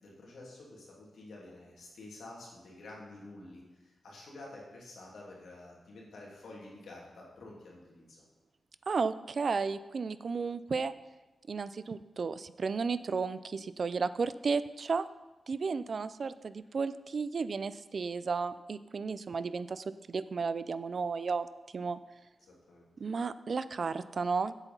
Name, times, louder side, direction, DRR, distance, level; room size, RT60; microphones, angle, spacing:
voice 1, 0.0-8.2 22.4-22.9, left 2 dB, 75° left, -3 dB, 2.7 m, -50 dB
voice 2, 8.9-10.9 11.5-15.1 15.5-21.5 21.7-22.0 23.0-24.5, right 4 dB, 45° right, 14 dB, 0.3 m, -33 dB
8.2 x 8.1 x 5.5 m, 1.1 s
wide cardioid pair, 170°, 0 cm